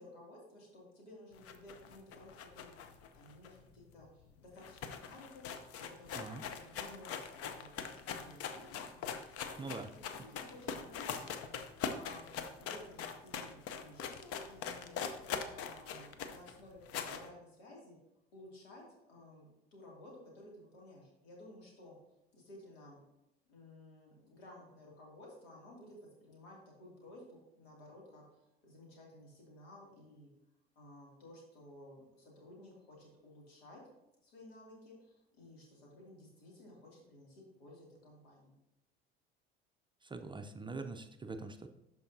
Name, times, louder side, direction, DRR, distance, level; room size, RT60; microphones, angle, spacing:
voice 1, 0.0-2.7 3.1-11.3 11.8-15.0 15.5-18.0 18.3-22.0 22.3-23.0 23.4-30.3 30.7-33.8 34.2-38.6, left 1 dB, 80° left, -2 dB, 2.5 m, -55 dB
sound 1, 1.4-4.0 4.3-4.4 4.6-17.3, left 7 dB, 50° left, 0.8 m, -42 dB
voice 2, 40.0-41.7, right 3 dB, 15° right, 7 dB, 0.5 m, -43 dB
12.0 x 4.7 x 2.7 m, 0.90 s
hypercardioid pair, 65°, 31 cm